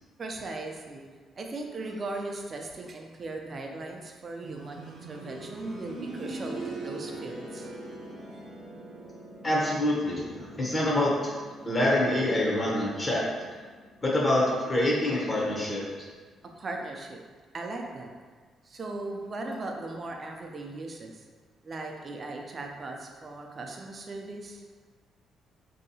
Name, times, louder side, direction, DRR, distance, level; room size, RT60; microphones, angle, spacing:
voice 1, 0.2-1.1 1.4-7.7 16.6-17.2 17.5-18.1 18.6-21.3 21.6-24.6, right 2 dB, 40° right, 2 dB, 0.4 m, -38 dB
sound 1, 4.4-15.2 15.5-15.6 16.5-16.6, right 2 dB, 90° right, 0.6 m, -43 dB
voice 2, 9.4-11.3 11.6-13.2 14.0-15.8, left 1 dB, 25° left, -4 dB, 0.7 m, -26 dB
3.1 x 2.7 x 2.7 m, 1.5 s
cardioid pair, 90°, 0 cm